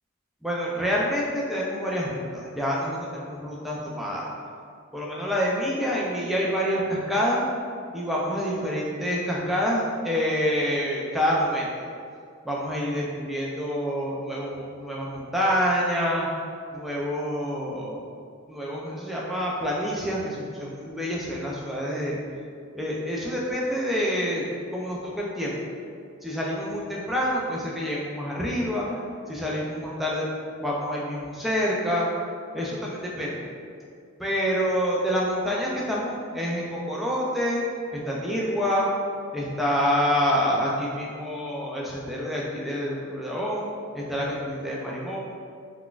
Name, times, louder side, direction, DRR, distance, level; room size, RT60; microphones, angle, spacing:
voice 1, 0.4-4.3 4.9-7.4 7.9-11.9 12.4-16.3 16.7-18.1 18.5-22.2 22.7-24.4 24.7-25.5 26.2-28.9 29.3-30.3 30.6-32.1 32.5-33.5 34.2-37.6 37.9-38.9 39.3-43.7 43.9-45.2, equal, ahead, -5 dB, 0.3 m, -27 dB
3.9 x 2.2 x 2.4 m, 2.2 s
head